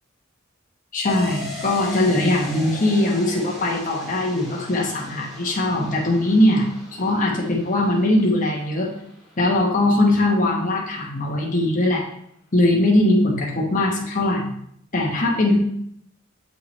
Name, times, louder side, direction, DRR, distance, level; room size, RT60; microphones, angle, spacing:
voice 1, 0.9-8.9 9.4-12.0 12.5-14.5 14.9-15.6, left 1 dB, 40° left, -2 dB, 1.2 m, -20 dB
sound 1, 1.1-10.5 10.8-10.9, left 2 dB, ahead, 1.6 m, -39 dB
6.9 x 5.7 x 3.2 m, 0.70 s
head